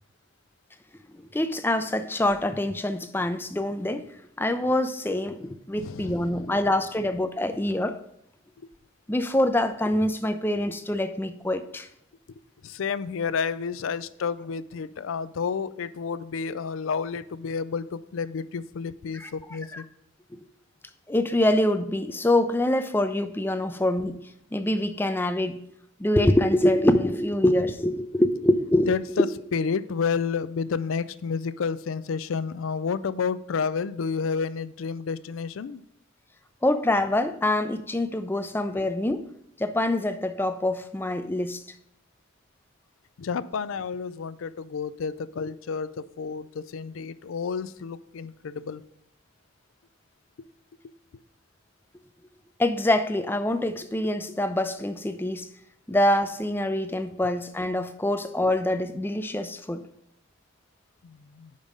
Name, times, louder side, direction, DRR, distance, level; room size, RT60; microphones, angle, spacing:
voice 1, 1.3-4.1 4.4-8.0 9.1-11.9 19.1-19.3 19.7-19.8 21.1-24.2 24.5-25.6 26.0-28.9 36.6-39.3 39.6-41.6 52.6-55.5 55.9-59.8, left 1 dB, 10° left, 0.4 m, -25 dB
voice 2, 5.7-6.5 8.6-8.7 12.3-19.8 28.9-29.3 29.5-35.8 43.2-48.8 61.0-61.5, left 5 dB, 90° left, 0.4 m, -30 dB
5.4 x 5.2 x 6.1 m
head